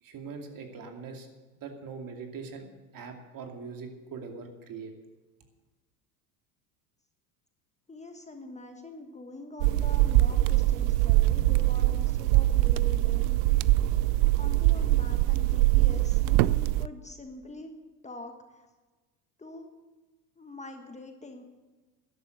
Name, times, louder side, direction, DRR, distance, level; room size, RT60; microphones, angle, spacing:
voice 1, 0.0-1.3 1.5-2.7 2.9-4.9, right 5 dB, 45° right, 4 dB, 2.5 m, -41 dB
voice 2, 7.9-13.4 14.4-17.7 18.0-18.7 19.4-19.7 20.4-21.4, left 2 dB, 15° left, 5 dB, 1.4 m, -44 dB
sound 1, 9.6-16.9, right 17 dB, 60° right, 0.6 m, -23 dB
13.0 x 11.5 x 6.5 m, 1.3 s
hypercardioid pair, 85°, 47 cm